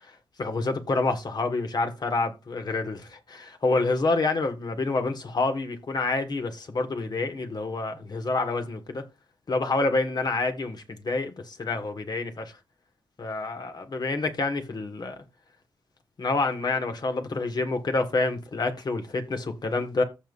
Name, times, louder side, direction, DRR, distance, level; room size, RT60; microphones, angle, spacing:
voice 1, 0.4-9.0 9.5-12.5 13.2-15.1 16.2-20.0, left 3 dB, 50° left, 1.7 m, -28 dB
14.5 x 5.5 x 2.6 m
cardioid pair, 80°, 9 cm